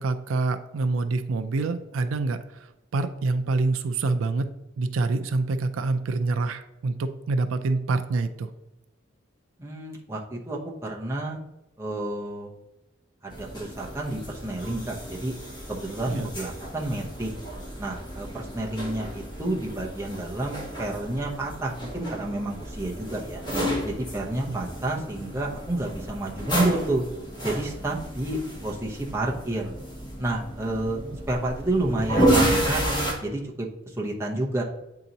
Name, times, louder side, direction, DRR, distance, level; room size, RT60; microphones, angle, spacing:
voice 1, 0.0-4.5 4.8-8.5 16.1-16.3 24.5-24.6 31.1-31.2, right 3 dB, 85° right, 9 dB, 0.4 m, -26 dB
voice 2, 9.6-11.4 11.8-12.5 13.2-15.3 15.7-17.3 17.8-23.4 23.8-27.0 27.4-29.7 30.2-31.0 31.3-32.8 33.2-34.6, right 1 dB, 15° right, -3 dB, 0.8 m, -30 dB
sound 1, 13.3-33.1, right 1 dB, 20° left, 1.5 m, -31 dB
8.3 x 2.9 x 3.9 m, 0.92 s
head